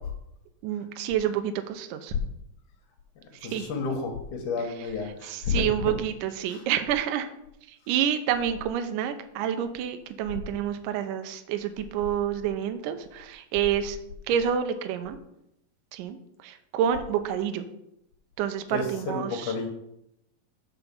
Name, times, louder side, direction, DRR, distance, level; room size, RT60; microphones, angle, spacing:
voice 1, 0.6-2.1 3.5-3.7 5.2-7.3 7.9-14.0 14.3-15.2 15.9-16.2 16.4-17.7 18.4-19.5, right 9 dB, 80° right, 8 dB, 2.1 m, -28 dB
voice 2, 3.4-5.9 6.4-6.6 18.7-19.7, left 4 dB, 65° left, 4 dB, 2.6 m, -31 dB
5.9 x 5.7 x 6.8 m, 0.80 s
omnidirectional pair, 4.1 m